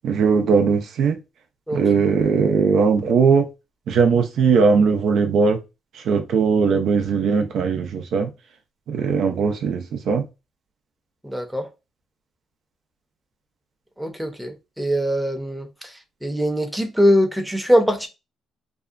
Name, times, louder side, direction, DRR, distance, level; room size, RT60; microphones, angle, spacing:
voice 1, 0.0-1.2 1.7-3.5 3.9-5.6 6.1-8.3 8.9-10.2, right 5 dB, 75° right, 0.5 m, -19 dB
voice 2, 11.2-11.7 14.0-15.7 16.2-18.1, equal, 5° right, 0.7 m, -21 dB
2.7 x 2.2 x 2.4 m
cardioid pair, 90°, 0 cm